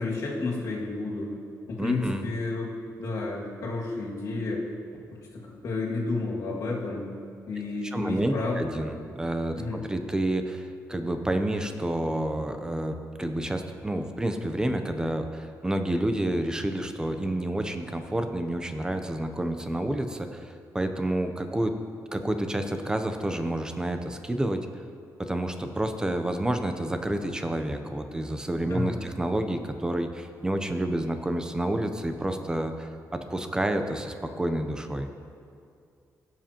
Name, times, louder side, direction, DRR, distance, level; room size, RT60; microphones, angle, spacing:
voice 1, 0.0-1.3 1.7-2.7 3.0-4.7 5.3-7.1 7.5-8.9 9.6-9.8 28.7-29.1, left 3 dB, 65° left, -4 dB, 2.2 m, -31 dB
voice 2, 1.8-2.3 7.9-9.6 9.9-21.7 22.1-24.7 25.2-35.1, right 1 dB, 10° right, 7 dB, 0.6 m, -29 dB
17.0 x 7.6 x 3.0 m, 2.4 s
cardioid pair, 135°, 6 cm